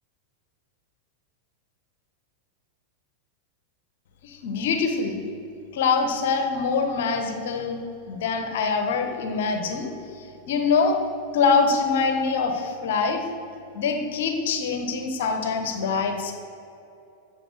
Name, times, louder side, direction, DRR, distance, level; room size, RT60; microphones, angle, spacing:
voice 1, 4.2-5.2 5.7-7.8 8.1-9.9 10.2-11.0 11.3-13.2 13.7-16.3, left 5 dB, 55° left, 6 dB, 1.3 m, -24 dB
14.5 x 7.3 x 7.8 m, 2.9 s
figure-of-eight pair, 90°, 0 cm